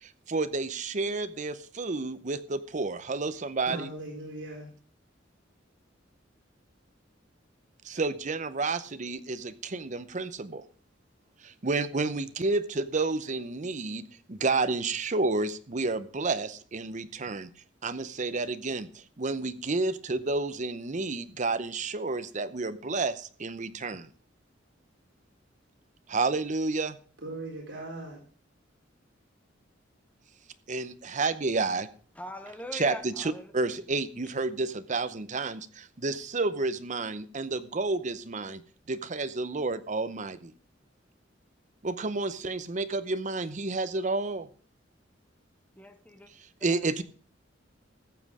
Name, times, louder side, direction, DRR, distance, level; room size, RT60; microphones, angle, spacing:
voice 1, 0.0-3.9 7.8-10.6 11.4-17.5 17.8-24.1 26.1-27.0 30.7-31.9 32.7-38.6 38.9-40.5 41.8-44.5 46.6-47.0, right 3 dB, 40° right, 0.7 m, -30 dB
voice 2, 3.7-4.7 27.2-28.2, right 2 dB, 70° right, 4.2 m, -39 dB
voice 3, 32.2-33.5 45.8-46.3 46.7-46.8, left 1 dB, 10° left, 1.0 m, -41 dB
14.5 x 7.5 x 4.9 m
head